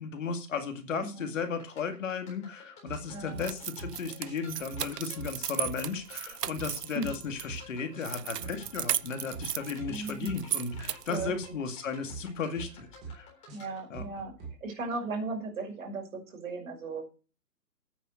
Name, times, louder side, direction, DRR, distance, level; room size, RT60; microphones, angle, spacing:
voice 1, 0.0-13.3 13.9-14.1, left 5 dB, 50° left, 6 dB, 2.2 m, -35 dB
voice 2, 1.0-1.3 3.1-3.4 6.9-7.1 9.9-10.3 11.1-11.6 13.5-17.0, right 3 dB, 55° right, 2 dB, 6.0 m, -37 dB
sound 1, 1.4-13.8, left 3 dB, 15° left, 4.0 m, -54 dB
sound 2, 2.9-3.4 3.8-4.0 4.2-4.8 5.2-5.4 5.6-6.7 7.0-7.6 7.9-8.1 8.4-9.0 9.3-9.5 9.8-10.4 10.7-10.9 11.2-11.7 12.1-12.3 12.5-13.1 13.5-14.5, right 4 dB, 5° right, 0.7 m, -43 dB
sound 3, 3.4-7.5 8.0-11.2, right 10 dB, 70° right, 0.7 m, -36 dB
9.3 x 8.9 x 6.3 m, 0.35 s
hypercardioid pair, 145°, 49 cm